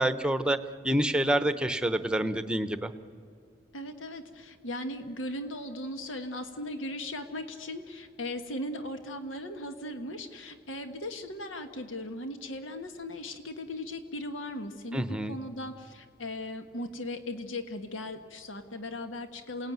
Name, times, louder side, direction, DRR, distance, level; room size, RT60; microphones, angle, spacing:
voice 1, 0.0-2.9 14.9-15.4, right 1 dB, 5° right, 11 dB, 0.9 m, -27 dB
voice 2, 3.7-19.7, left 1 dB, 90° left, 8 dB, 1.5 m, -38 dB
28.0 x 18.0 x 9.4 m, 2.3 s
head